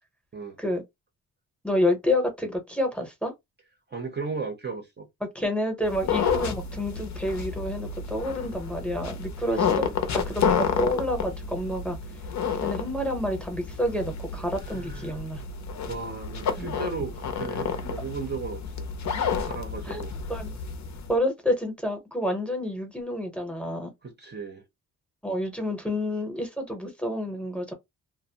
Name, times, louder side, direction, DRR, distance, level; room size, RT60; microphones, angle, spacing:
voice 1, 1.6-3.3 5.3-9.9 10.1-12.0 12.6-15.4 16.6-16.8 19.8-20.0 20.3-20.6 21.1-23.9 25.2-27.7, left 1 dB, 5° left, 0.8 m, -29 dB
voice 2, 3.9-5.1 9.4-9.9 14.7-15.2 15.9-18.9 19.4-20.1 24.0-24.7, right 4 dB, 30° right, 0.6 m, -36 dB
sound 1, 5.8-21.1, left 6 dB, 55° left, 0.6 m, -30 dB
2.5 x 2.0 x 2.7 m
wide cardioid pair, 135°, 35 cm